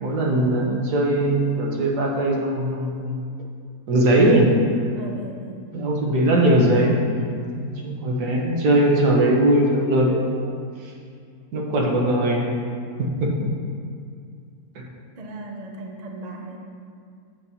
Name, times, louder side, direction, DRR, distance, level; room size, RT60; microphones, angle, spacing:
voice 1, 0.0-3.2 3.9-4.6 5.7-10.5 11.5-12.5 13.0-13.3 14.7-14.8, right 1 dB, 75° right, -2 dB, 1.6 m, -20 dB
voice 2, 4.9-5.7 15.2-16.6, right 2 dB, 50° right, 0 dB, 0.4 m, -37 dB
8.3 x 7.5 x 2.8 m, 2.3 s
omnidirectional pair, 1.8 m